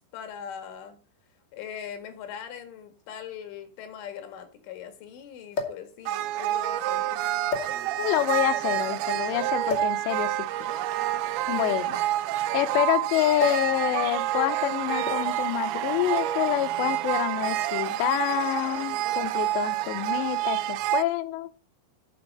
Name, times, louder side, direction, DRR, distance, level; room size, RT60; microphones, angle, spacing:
voice 1, 0.1-1.0 1.5-7.2 11.4-11.8, left 8 dB, 70° left, 4.1 m, -41 dB
sound 1, 1.8-1.9 3.0-3.1 3.3-3.4 5.5-5.9 6.7-6.9 7.5-8.2 9.7-10.0 11.1-12.8 13.4-13.7 14.0-14.3 15.0-15.4 16.4-16.6, left 4 dB, 35° left, 1.7 m, -33 dB
sound 2, 6.1-21.0, right 13 dB, 90° right, 2.5 m, -28 dB
voice 2, 8.0-10.4 11.5-12.0 12.5-21.5, left 14 dB, 90° left, 2.4 m, -27 dB
10.0 x 7.1 x 5.3 m
omnidirectional pair, 6.0 m